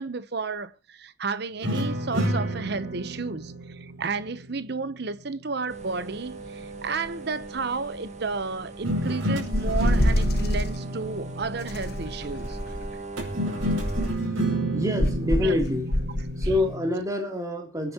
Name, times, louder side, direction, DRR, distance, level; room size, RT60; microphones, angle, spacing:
voice 1, 0.0-12.6 15.4-15.5, right 4 dB, 55° right, 0.8 m, -32 dB
sound 1, 1.6-5.0 8.8-12.2 13.2-17.0, right 1 dB, 90° right, 5.3 m, -30 dB
sound 2, 5.7-14.1, right 3 dB, 35° right, 1.8 m, -40 dB
sound 3, 9.5-10.8 11.7-12.9 13.6-14.3 15.0-16.6, left 1 dB, 50° left, 1.2 m, -26 dB
voice 2, 14.7-15.9 16.4-17.9, left 1 dB, 15° right, 3.0 m, -26 dB
24.5 x 9.5 x 2.9 m
head